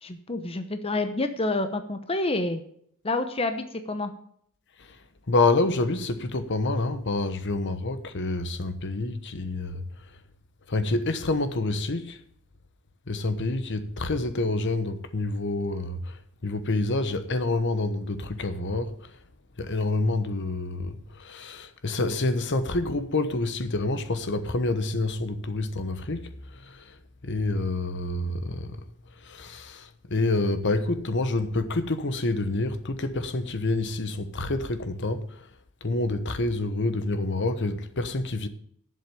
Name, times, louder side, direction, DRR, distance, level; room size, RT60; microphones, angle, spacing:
voice 1, 0.0-2.6 3.0-4.1, left 2 dB, 25° left, 0.9 m, -28 dB
voice 2, 5.3-9.8 10.7-12.2 13.1-19.1 19.6-27.0 27.2-28.8 29.2-35.5 35.8-38.5, left 2 dB, 55° left, 1.1 m, -28 dB
11.0 x 7.7 x 7.0 m
head